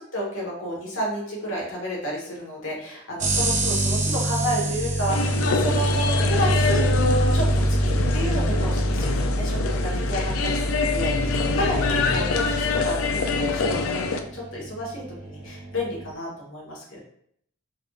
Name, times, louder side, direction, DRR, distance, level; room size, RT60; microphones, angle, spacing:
voice 1, 0.1-6.9 7.3-7.5 7.8-14.0 14.3-17.0, equal, 70° left, -3 dB, 1.5 m, -31 dB
sound 1, 3.2-16.1, right 1 dB, 35° right, 0.7 m, -25 dB
sound 2, 5.1-14.2, left 4 dB, 85° left, 0.4 m, -26 dB
4.8 x 3.4 x 2.5 m, 0.67 s
head